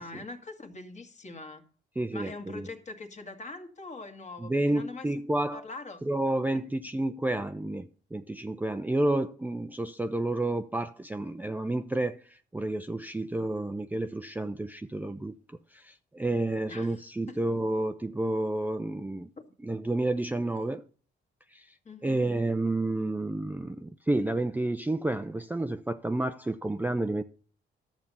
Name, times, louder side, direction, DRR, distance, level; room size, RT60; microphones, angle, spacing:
voice 1, 0.0-1.7 2.1-5.1 5.5-6.0 16.7-17.0 17.3-17.4 21.9-22.3, left 3 dB, 35° left, 1.8 m, -42 dB
voice 2, 2.0-2.7 4.4-5.6 6.0-15.4 15.7-19.3 19.6-20.8 21.5-21.8 22.0-27.2, right 2 dB, 10° right, 0.5 m, -30 dB
11.5 x 7.2 x 5.5 m
cardioid pair, 90°, 20 cm